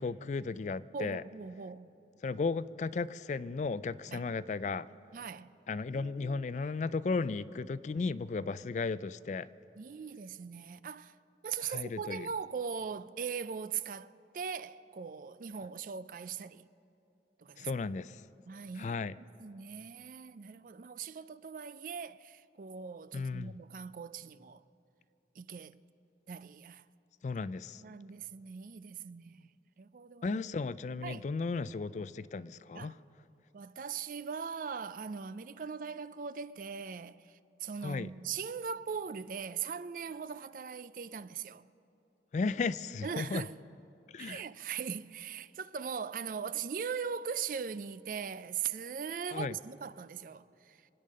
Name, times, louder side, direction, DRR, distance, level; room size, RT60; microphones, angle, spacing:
voice 1, 0.0-1.2 2.2-4.8 5.7-9.5 11.6-12.3 17.6-18.2 18.8-19.1 23.1-23.5 27.2-27.8 30.2-33.0 37.8-38.1 42.3-43.4 44.1-44.4 49.3-49.5, left 4 dB, 40° left, 0.3 m, -35 dB
voice 2, 0.9-1.9 4.1-4.3 5.1-5.5 5.9-6.5 9.8-11.2 11.4-16.7 17.4-17.7 18.5-24.6 25.4-25.8 26.3-26.8 27.8-29.5 29.8-30.4 31.0-31.3 32.7-32.9 33.5-41.7 43.0-43.6 44.2-50.9, right 6 dB, 50° right, 0.4 m, -40 dB
24.5 x 9.2 x 6.5 m
head